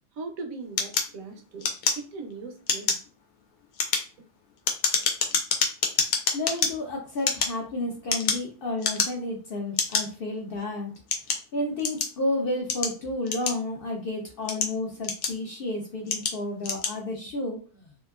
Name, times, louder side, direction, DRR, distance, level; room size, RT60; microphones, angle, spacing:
voice 1, 0.1-1.7 2.0-3.0, right 4 dB, 75° right, 5 dB, 1.0 m, -39 dB
sound 1, 0.8-2.3 2.6-3.1 3.6-6.7 7.2-8.5 8.8-9.3 9.8-10.0 10.7-12.2 12.7-13.9 14.3-15.5 16.1-16.4 16.6-17.0, left 5 dB, 80° left, 1.0 m, -27 dB
voice 2, 6.3-10.9 11.5-17.9, left 2 dB, 60° left, 0 dB, 0.6 m, -31 dB
2.8 x 2.4 x 2.3 m, 0.35 s
omnidirectional pair, 1.5 m